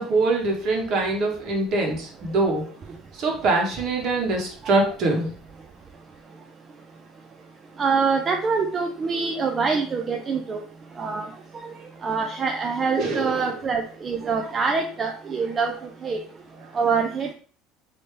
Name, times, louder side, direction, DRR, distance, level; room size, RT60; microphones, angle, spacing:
voice 1, 0.0-2.7 3.1-5.3 13.0-13.6, right 2 dB, 50° right, 0 dB, 1.1 m, -24 dB
voice 2, 7.8-10.6 11.0-11.3 11.6-11.7 12.0-15.7 16.0-16.2 16.7-17.3, right 5 dB, 25° right, 3 dB, 0.3 m, -25 dB
3.2 x 2.7 x 3.1 m, 0.43 s
cardioid pair, 145°, 0 cm